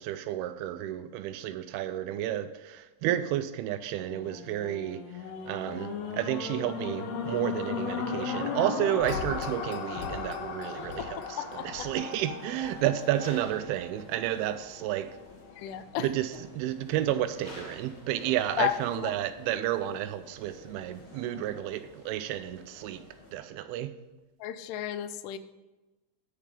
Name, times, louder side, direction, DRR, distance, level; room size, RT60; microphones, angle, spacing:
voice 1, 0.0-5.0 5.5-15.1 16.0-23.0 23.3-23.9, right 12 dB, 85° right, 11 dB, 2.4 m, -31 dB
sound 1, 4.0-14.2 14.8-14.9, left 6 dB, 70° left, 2.0 m, -36 dB
sound 2, 9.1-23.3, left 2 dB, 45° left, 1.7 m, -51 dB
voice 2, 11.4-11.9 15.6-16.1 18.6-19.1 24.4-25.4, left 11 dB, 90° left, 12 dB, 2.7 m, -33 dB
9.4 x 6.7 x 5.1 m, 1.1 s
omnidirectional pair, 4.6 m